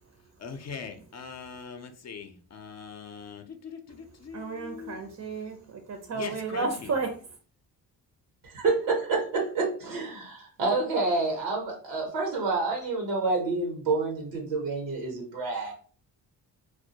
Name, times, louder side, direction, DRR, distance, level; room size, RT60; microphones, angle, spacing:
voice 1, 0.4-5.0 6.1-6.9, left 6 dB, 40° left, 7 dB, 0.5 m, -41 dB
voice 2, 4.3-7.1, right 4 dB, 40° right, 5 dB, 0.5 m, -32 dB
voice 3, 8.4-15.7, right 3 dB, 85° right, 0 dB, 0.8 m, -28 dB
2.2 x 2.1 x 2.7 m, 0.41 s
supercardioid pair, 55°, 43 cm